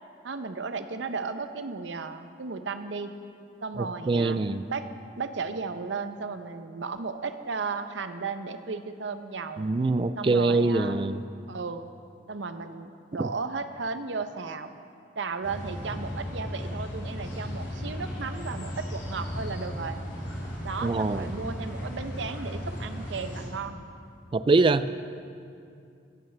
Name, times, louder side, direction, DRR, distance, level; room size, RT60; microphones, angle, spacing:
voice 1, 0.2-3.1 3.6-4.4 4.7-4.9 5.2-9.7 10.2-11.0 11.5-11.9 12.3-14.7 15.2-20.0 20.6-23.8, right 4 dB, 75° right, 9 dB, 0.7 m, -35 dB
voice 2, 4.1-4.6 9.6-11.2 13.2-13.3 20.8-21.2 24.3-24.9, right 3 dB, 25° right, 13 dB, 0.3 m, -23 dB
sound 1, 15.4-23.5, equal, 80° left, 3.3 m, -36 dB
15.0 x 14.5 x 3.3 m, 2.5 s
head